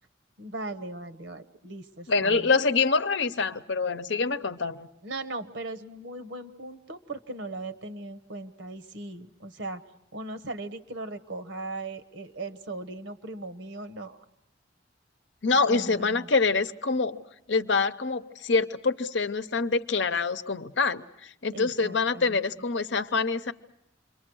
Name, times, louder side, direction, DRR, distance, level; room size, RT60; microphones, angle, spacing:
voice 1, 0.4-2.5 5.0-9.8 10.1-14.2 15.6-16.3 21.5-22.4, right 2 dB, 75° right, 9 dB, 1.3 m, -38 dB
voice 2, 2.1-4.9 15.4-17.2 17.5-23.5, left 4 dB, 70° left, 10 dB, 0.8 m, -26 dB
28.5 x 23.0 x 6.3 m, 0.79 s
head